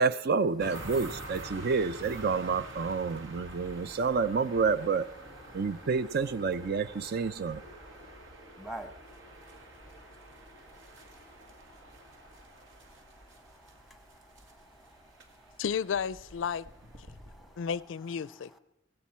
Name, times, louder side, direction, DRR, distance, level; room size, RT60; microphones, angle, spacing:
voice 1, 0.0-5.1 5.5-7.6, right 5 dB, 55° right, 0.5 m, -29 dB
sound 1, 0.6-17.8, right 1 dB, 80° right, 1.9 m, -47 dB
voice 2, 3.1-4.2 5.4-6.1 6.5-15.6 17.0-17.7 18.2-18.6, right 1 dB, ahead, 1.0 m, -53 dB
voice 3, 15.6-16.7 17.6-18.6, left 7 dB, 85° left, 0.4 m, -32 dB
18.0 x 15.5 x 4.4 m
head